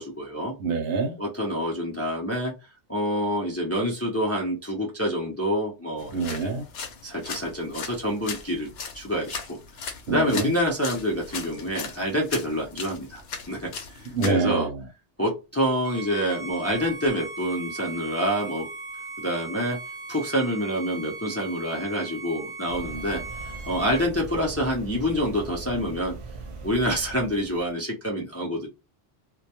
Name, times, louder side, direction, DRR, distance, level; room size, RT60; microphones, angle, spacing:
voice 1, 0.0-0.5 1.2-2.5 2.9-6.5 7.0-8.7 8.9-14.7 15.2-18.7 19.2-19.8 20.1-26.2 26.6-28.7, equal, 20° left, 0.5 m, -27 dB
voice 2, 0.6-1.2 6.1-6.6 10.1-10.5 14.1-14.8, right 4 dB, 75° right, 0.9 m, -26 dB
sound 1, 6.0-14.3, left 5 dB, 75° left, 0.8 m, -38 dB
Bowed string instrument, 15.8-24.1, right 3 dB, 25° right, 0.8 m, -38 dB
sound 2, 22.7-27.7, right 3 dB, 55° right, 0.3 m, -40 dB
2.2 x 2.1 x 2.8 m
omnidirectional pair, 1.1 m